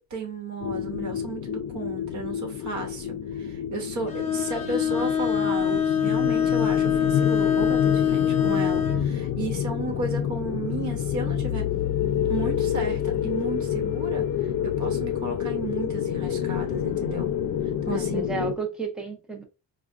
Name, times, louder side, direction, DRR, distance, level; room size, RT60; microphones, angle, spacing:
voice 1, 0.0-11.7 12.3-17.3 17.9-18.3, right 3 dB, 55° right, 0.9 m, -34 dB
sound 1, 0.6-18.5, left 9 dB, 70° left, 0.5 m, -28 dB
Bowed string instrument, 4.1-9.0, left 8 dB, 20° left, 0.8 m, -24 dB
voice 2, 17.9-19.4, right 5 dB, ahead, 0.5 m, -32 dB
4.6 x 2.1 x 2.4 m
cardioid pair, 160°, 34 cm